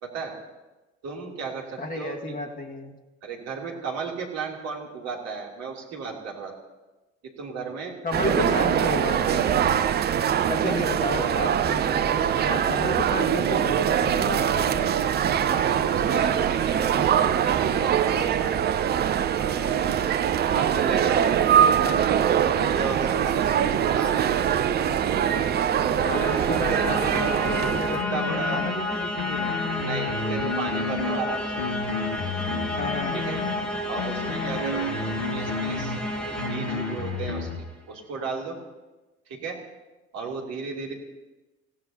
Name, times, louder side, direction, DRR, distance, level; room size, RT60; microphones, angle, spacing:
voice 1, 0.0-0.4 1.0-2.4 3.2-6.5 7.2-8.9 10.5-10.8 11.1-11.2 15.5-18.5 19.4-19.8 20.5-21.7 22.2-24.7 26.1-26.3 27.9-28.6 29.8-31.6 33.1-33.4 33.9-34.9 35.3-36.0 36.5-38.6 39.3-39.6 40.1-40.9, right 5 dB, 45° right, -1 dB, 3.2 m, -34 dB
voice 2, 1.8-3.0 8.0-9.7 10.5-15.0 26.1-29.5 32.8-33.2, left 2 dB, 25° left, 3 dB, 1.9 m, -32 dB
sound 1, 8.1-28.0, right 9 dB, 25° right, 0.7 m, -23 dB
sound 2, 24.6-37.7, left 1 dB, 5° left, 2.5 m, -31 dB
sound 3, 28.0-28.8 29.2-31.2 31.6-33.6 34.0-36.0 36.4-37.6, left 4 dB, 70° left, 1.7 m, -31 dB
28.0 x 16.5 x 2.9 m, 1.1 s
figure-of-eight pair, 65°, 36 cm